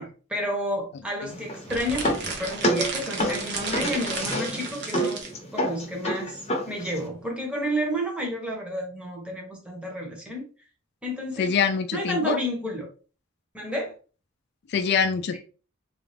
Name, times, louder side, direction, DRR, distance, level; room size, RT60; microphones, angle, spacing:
voice 1, 0.0-5.2 5.5-6.4 6.7-10.4 11.0-11.5 11.9-12.9 13.5-13.9, equal, 5° right, -1 dB, 1.0 m, -31 dB
sound 1, 1.3-7.1, equal, 30° left, 0.8 m, -29 dB
sound 2, 1.6-5.3, right 4 dB, 55° right, 0.9 m, -33 dB
voice 2, 11.4-12.4 14.7-15.4, left 6 dB, 55° left, 11 dB, 0.3 m, -24 dB
3.9 x 2.4 x 3.2 m, 0.37 s
head